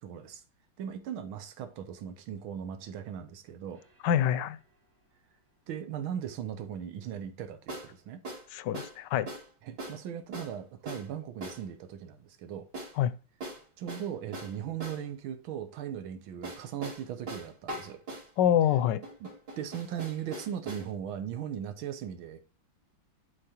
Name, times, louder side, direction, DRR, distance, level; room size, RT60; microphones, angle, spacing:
voice 1, 0.0-0.4 0.8-3.8 5.7-8.2 9.6-12.7 13.8-18.0 19.2-19.3 19.6-22.5, right 9 dB, 85° right, 1.7 m, -38 dB
sound 1, 3.8-3.9 7.7-7.9 8.2-8.5 8.7-9.0 9.3-9.5 9.8-10.0 10.3-10.5 10.9-11.1 11.4-11.6 12.7-13.0 13.4-15.0 16.4-18.3 19.0-20.9, right 1 dB, 60° right, 3.5 m, -41 dB
voice 2, 4.0-4.6 8.5-9.3 13.0-13.1 18.4-19.0, left 10 dB, 70° left, 1.1 m, -26 dB
11.5 x 4.8 x 2.9 m
omnidirectional pair, 2.2 m